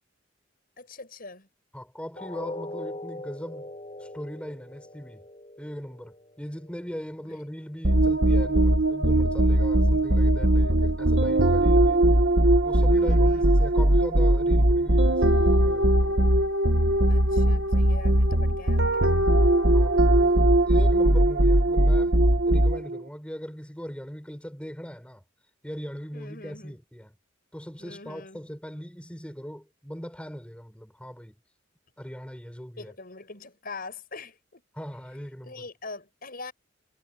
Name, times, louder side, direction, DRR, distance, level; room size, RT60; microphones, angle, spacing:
voice 1, 0.8-1.5 7.3-7.4 12.9-13.5 17.1-19.1 26.1-26.8 27.8-28.4 32.8-34.6 35.4-36.5, left 3 dB, 50° left, 6.6 m, -43 dB
voice 2, 1.7-5.3 5.6-12.0 12.6-16.2 19.7-20.4 20.6-25.2 25.6-27.1 27.5-31.4 32.0-32.9 34.7-35.6, equal, 5° left, 6.8 m, -40 dB
sound 1, 2.2-8.1 8.5-8.7 9.2-9.3, left 1 dB, 30° left, 7.6 m, -42 dB
sound 2, 7.8-23.0, right 1 dB, 65° right, 2.1 m, -20 dB
head